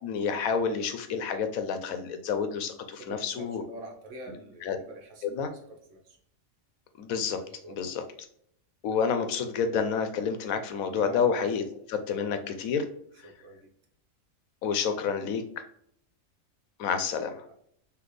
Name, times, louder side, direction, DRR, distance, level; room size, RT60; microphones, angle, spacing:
voice 1, 0.0-3.6 4.6-4.8 5.2-5.5 7.0-7.4 7.7-8.0 8.8-12.8 14.6-15.4 16.8-17.4, left 6 dB, 90° left, 8 dB, 1.1 m, -29 dB
voice 2, 3.0-5.5 5.9-6.2 7.4-7.8 11.0-11.2 13.2-13.7 17.4-17.5, right 2 dB, 65° right, 2 dB, 1.3 m, -45 dB
4.0 x 3.1 x 3.2 m, 0.67 s
omnidirectional pair, 1.4 m